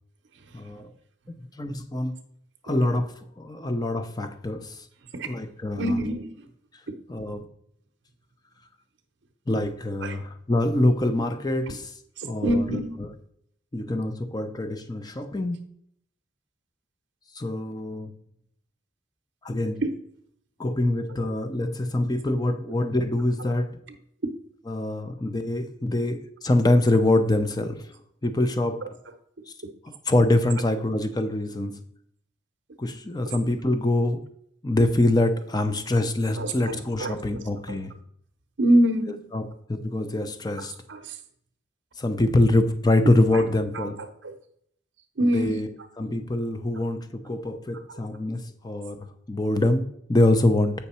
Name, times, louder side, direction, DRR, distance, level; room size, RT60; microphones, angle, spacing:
voice 1, 0.5-0.9 1.6-2.2 2.6-3.1 3.4-4.8 5.3-5.9 7.1-7.5 9.5-11.9 12.2-12.8 13.7-15.6 17.3-18.1 19.4-19.8 20.6-23.7 24.7-27.7 28.2-28.8 29.8-31.7 32.8-34.2 34.6-37.9 39.3-39.4 39.7-40.7 42.0-44.0 45.2-45.7 46.0-49.0 49.3-50.7, left 1 dB, 20° left, 0.6 m, -24 dB
voice 2, 5.8-6.5 6.9-7.0 10.0-10.2 11.7-11.8 12.2-12.9 19.8-19.9 36.3-37.8 38.6-39.2 40.6-41.2 43.3-43.4 43.7-43.9 44.2-44.4 45.2-45.6 46.7-46.8 47.9-48.0, right 1 dB, 60° right, 0.7 m, -26 dB
8.2 x 5.7 x 4.3 m
head